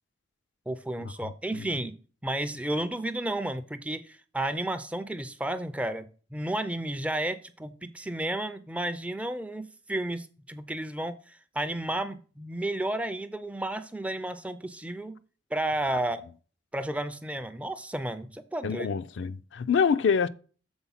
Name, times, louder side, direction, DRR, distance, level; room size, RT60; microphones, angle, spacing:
voice 1, 0.7-2.0 2.2-15.2 15.5-16.2 16.7-18.9, right 1 dB, 5° right, 0.4 m, -32 dB
voice 2, 1.2-1.7 18.6-20.3, left 6 dB, 65° left, 0.4 m, -26 dB
7.0 x 4.2 x 5.6 m
head